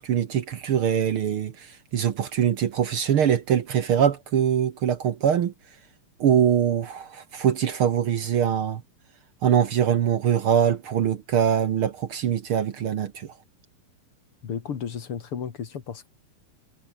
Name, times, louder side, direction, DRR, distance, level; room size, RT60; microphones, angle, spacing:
voice 1, 0.0-5.5 6.2-8.8 9.4-13.3, right 9 dB, 60° right, 1.4 m, -23 dB
voice 2, 14.4-16.1, left 7 dB, 45° left, 2.4 m, -33 dB
omnidirectional pair, 3.9 m